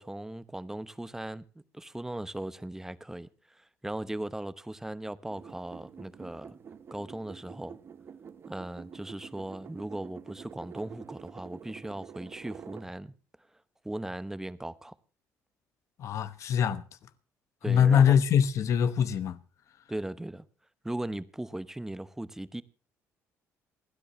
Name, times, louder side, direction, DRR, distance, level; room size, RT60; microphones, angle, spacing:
voice 1, 0.0-6.5 6.9-7.8 8.5-13.1 13.8-15.0 17.6-18.1 19.9-20.5 20.8-22.6, right 1 dB, 5° right, 0.9 m, -38 dB
sound 1, 5.3-12.9, right 7 dB, 45° right, 1.1 m, -48 dB
voice 2, 16.0-16.8 17.7-19.4, left 8 dB, 60° left, 1.0 m, -23 dB
27.5 x 10.0 x 3.0 m
cardioid pair, 105°, 6 cm